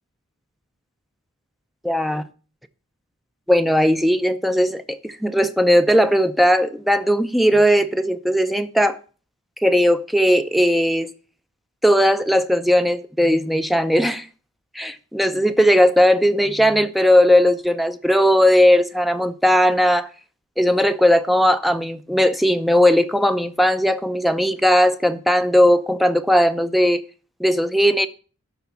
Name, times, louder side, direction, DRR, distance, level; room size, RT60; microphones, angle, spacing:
voice 1, 1.8-2.2 3.5-9.0 9.6-11.1 11.8-14.3 14.8-20.1 20.6-27.0 27.4-28.1, equal, ahead, 0.5 m, -17 dB
12.0 x 4.1 x 6.9 m
head